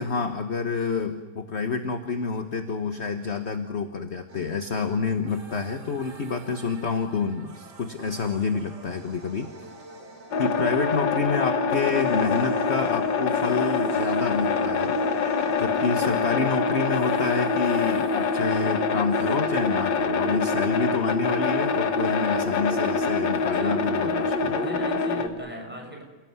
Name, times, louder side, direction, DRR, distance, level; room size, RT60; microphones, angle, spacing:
voice 1, 0.0-9.5 10.4-15.0 15.6-24.1, left 4 dB, 40° left, 7 dB, 1.3 m, -28 dB
sound 1, 4.3-19.4, right 3 dB, 60° right, 3.1 m, -47 dB
sound 2, 10.3-25.3, left 4 dB, 70° left, 2.1 m, -25 dB
voice 2, 23.4-26.0, right 1 dB, 5° right, 1 dB, 6.7 m, -38 dB
29.0 x 18.5 x 9.6 m, 1.3 s
omnidirectional pair, 2.1 m